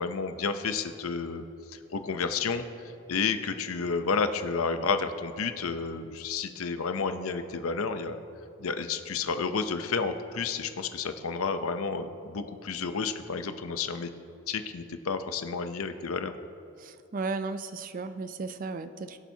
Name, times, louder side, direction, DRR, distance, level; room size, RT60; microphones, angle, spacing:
voice 1, 0.0-1.5 1.7-2.6 3.1-8.2 8.6-14.1 14.5-16.3, left 5 dB, 90° left, 9 dB, 0.7 m, -31 dB
voice 2, 16.8-19.2, right 3 dB, 40° right, 11 dB, 0.4 m, -35 dB
21.5 x 7.2 x 2.8 m, 2.6 s
head